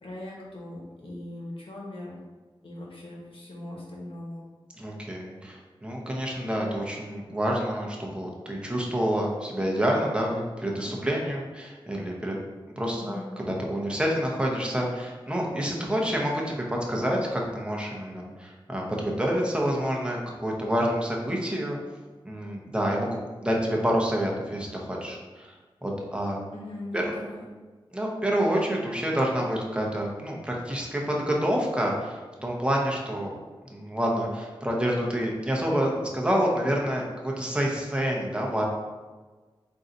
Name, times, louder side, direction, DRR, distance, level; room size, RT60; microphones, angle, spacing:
voice 1, 0.0-2.2 2.6-4.4 13.0-13.3 26.5-27.5, left 1 dB, 75° left, -4 dB, 1.1 m, -39 dB
voice 2, 4.8-12.3 12.8-21.8 22.2-25.5 25.8-26.4 26.9-27.0 27.9-33.3 33.7-38.6, equal, 10° right, -2 dB, 0.8 m, -28 dB
3.8 x 2.6 x 4.0 m, 1.3 s
wide cardioid pair, 70°, 9 cm